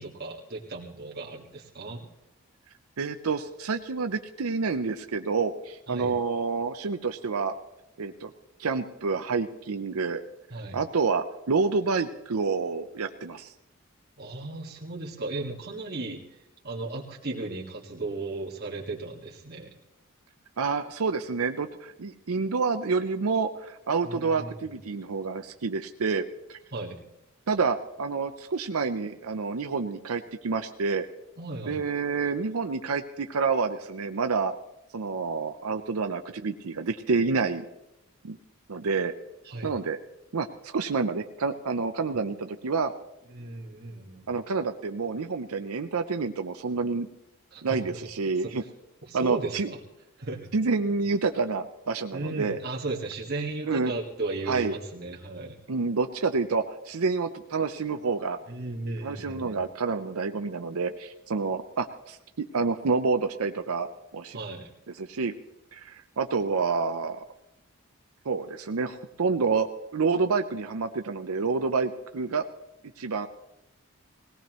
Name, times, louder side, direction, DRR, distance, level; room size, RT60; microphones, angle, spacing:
voice 1, 0.0-2.1 5.9-6.1 10.5-10.8 14.2-16.2 16.6-19.7 24.0-24.8 26.7-27.1 31.4-31.8 39.4-39.7 43.3-44.3 47.5-47.8 48.4-48.5 49.0-49.8 50.2-50.5 52.1-55.6 58.5-59.6 64.3-64.7, right 2 dB, 45° right, -3 dB, 1.8 m, -35 dB
voice 2, 3.0-7.5 8.0-8.3 8.6-10.2 10.7-13.5 20.6-26.6 27.5-31.1 31.7-34.5 34.9-37.6 38.2-38.4 38.7-39.1 39.6-40.0 40.3-42.9 44.3-47.1 47.6-48.6 49.1-49.7 50.5-52.6 53.7-53.9 54.5-54.8 55.7-58.4 59.0-63.9 64.1-64.4 64.9-65.3 65.7-67.2 68.2-72.4 73.0-73.3, right 4 dB, 90° right, 7 dB, 0.7 m, -28 dB
20.0 x 17.5 x 3.1 m, 0.91 s
head